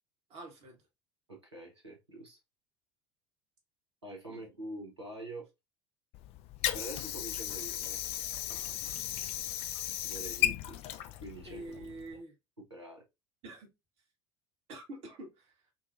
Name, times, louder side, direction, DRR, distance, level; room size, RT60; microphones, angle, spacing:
voice 1, 0.3-0.8 4.3-4.4 11.4-12.4 13.4-13.7 14.7-15.6, right 2 dB, 45° right, 1.2 m, -46 dB
voice 2, 1.3-2.4 4.0-5.5 6.7-8.0 10.0-10.8 11.2-11.9 12.6-13.0, right 1 dB, 85° right, 0.9 m, -45 dB
Water / Sink (filling or washing), 6.1-12.1, left 12 dB, 45° left, 0.4 m, -36 dB
3.9 x 2.3 x 2.5 m
figure-of-eight pair, 65°, 14 cm